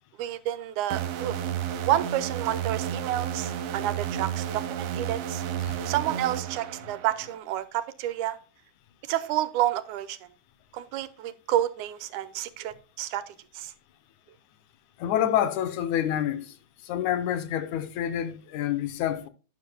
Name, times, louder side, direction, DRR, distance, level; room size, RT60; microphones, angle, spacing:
voice 1, 0.2-1.4 1.9-5.4 5.9-8.4 9.1-10.2 10.7-13.7, right 13 dB, 85° right, 2.2 m, -29 dB
sound 1, 0.9-7.4, right 9 dB, 70° right, 1.7 m, -32 dB
voice 2, 15.0-16.5 16.8-19.3, left 10 dB, 80° left, 2.3 m, -27 dB
12.0 x 9.7 x 2.2 m
omnidirectional pair, 3.5 m